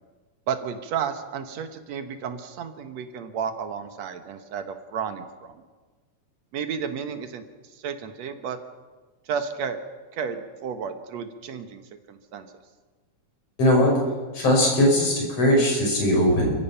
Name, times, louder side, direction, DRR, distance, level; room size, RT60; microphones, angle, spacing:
voice 1, 0.5-5.6 6.5-7.4 7.8-8.6 9.3-9.8 10.1-11.8 12.1-12.5, right 7 dB, 65° right, 8 dB, 2.2 m, -32 dB
voice 2, 13.6-13.9 14.3-16.5, left 1 dB, 50° left, -1 dB, 6.4 m, -19 dB
28.5 x 15.5 x 5.8 m, 1.3 s
omnidirectional pair, 3.6 m